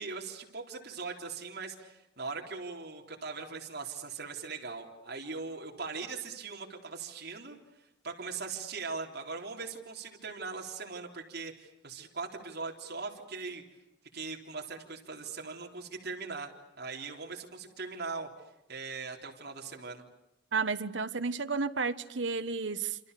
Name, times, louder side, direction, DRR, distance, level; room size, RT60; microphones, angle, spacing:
voice 1, 0.0-7.6 8.0-13.6 14.1-16.5 16.8-18.3 18.7-20.1, right 4 dB, 55° right, 3.8 m, -40 dB
voice 2, 20.5-23.0, right 4 dB, 75° right, 1.3 m, -32 dB
27.5 x 27.5 x 6.9 m
head